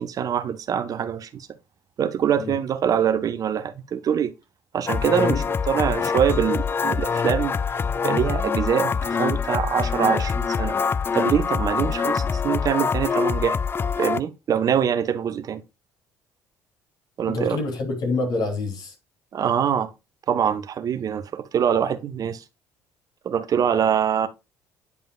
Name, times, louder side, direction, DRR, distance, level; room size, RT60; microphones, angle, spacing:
voice 1, 0.0-1.5 2.0-4.3 4.7-7.5 8.0-10.8 11.1-13.6 14.0-15.6 17.2-17.6 19.3-19.9 20.3-22.4 23.2-24.3, right 8 dB, 45° right, 0.8 m, -24 dB
sound 1, 4.9-14.2, left 6 dB, 25° left, 0.4 m, -24 dB
voice 2, 5.1-5.5 17.3-18.9, left 3 dB, 55° left, 2.9 m, -27 dB
9.5 x 5.3 x 2.2 m
hypercardioid pair, 55°, 8 cm